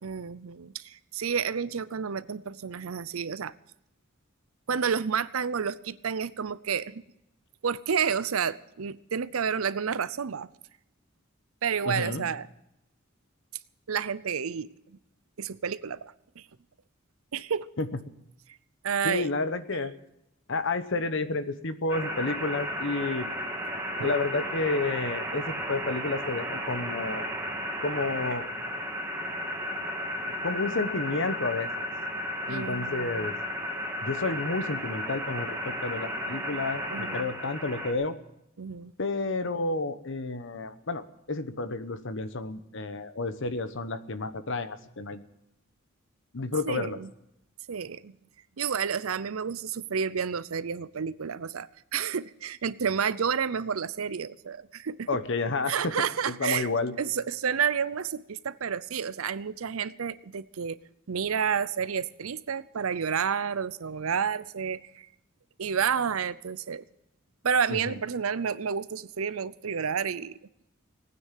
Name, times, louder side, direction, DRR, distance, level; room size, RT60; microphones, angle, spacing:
voice 1, 0.0-3.5 4.7-7.0 7.6-10.5 11.6-12.5 13.9-15.0 15.4-16.5 17.3-17.7 18.8-19.3 24.0-24.1 32.5-33.3 36.9-37.3 38.6-38.9 46.7-47.1 47.7-48.2 48.6-55.2 55.7-56.7 57.0-60.8 61.1-65.1 65.6-66.9 67.4-70.4, right 7 dB, 90° right, 16 dB, 0.6 m, -30 dB
voice 2, 11.9-12.3 17.8-17.9 19.0-19.9 20.5-23.3 24.0-27.2 27.8-28.5 30.4-31.9 32.5-33.3 34.0-38.2 39.0-45.2 46.3-47.0 55.1-55.9 56.4-56.9 67.7-68.0, left 3 dB, 65° left, 12 dB, 1.0 m, -30 dB
sound 1, 21.9-37.9, equal, 10° right, 2.2 m, -34 dB
18.5 x 9.6 x 7.5 m, 0.84 s
head